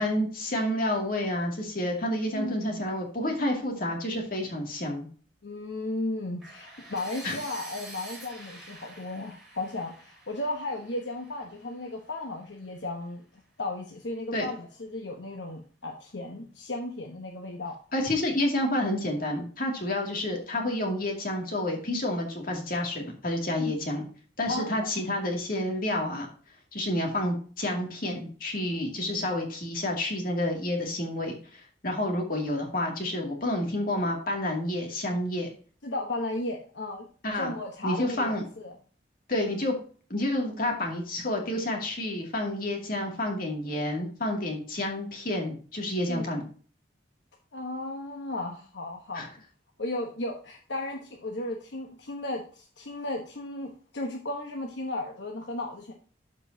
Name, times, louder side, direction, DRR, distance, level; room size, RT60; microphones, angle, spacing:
voice 1, 0.0-5.1 7.2-7.4 14.3-14.5 17.9-24.0 24.4-26.3 26.7-35.5 37.2-37.5 37.8-38.4 39.3-39.7 40.1-46.5 49.1-49.3, left 1 dB, 50° left, 0 dB, 2.4 m, -29 dB
voice 2, 2.3-2.8 5.4-17.8 23.6-23.8 24.5-25.1 35.8-37.1 37.3-38.7 46.1-46.3 47.5-49.3 49.8-55.9, left 2 dB, 75° left, 2 dB, 1.1 m, -35 dB
sound 1, 6.4-12.3, right 2 dB, ahead, 3.4 m, -47 dB
12.5 x 5.4 x 2.8 m, 0.41 s
head